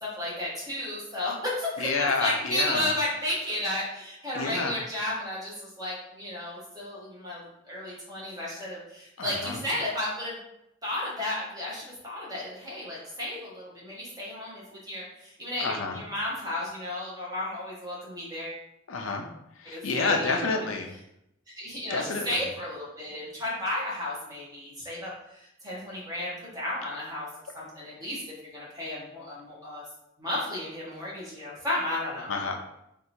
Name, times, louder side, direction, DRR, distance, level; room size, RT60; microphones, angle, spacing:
voice 1, 0.0-10.4 10.8-18.6 19.6-20.6 21.6-25.1 25.4-27.3 27.5-28.2 28.5-29.8 30.2-32.3, left 1 dB, 20° right, -6 dB, 1.4 m, -33 dB
voice 2, 1.8-2.9 4.3-4.8 9.2-9.6 15.6-16.0 18.9-19.3 19.6-20.9 21.9-22.3 32.3-32.5, left 4 dB, 90° left, 3 dB, 0.7 m, -29 dB
3.9 x 2.6 x 4.4 m, 0.82 s
head